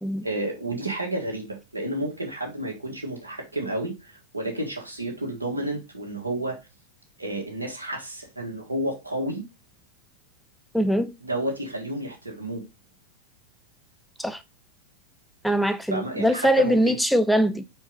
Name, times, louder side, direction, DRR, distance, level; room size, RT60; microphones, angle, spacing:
voice 1, 0.2-6.6 7.2-9.4 11.2-12.6 15.9-17.0, right 1 dB, 80° right, 1.6 m, -31 dB
voice 2, 10.7-11.1 14.2-14.4 15.4-17.6, equal, ahead, 0.6 m, -22 dB
4.5 x 4.5 x 5.0 m
figure-of-eight pair, 90°, 0 cm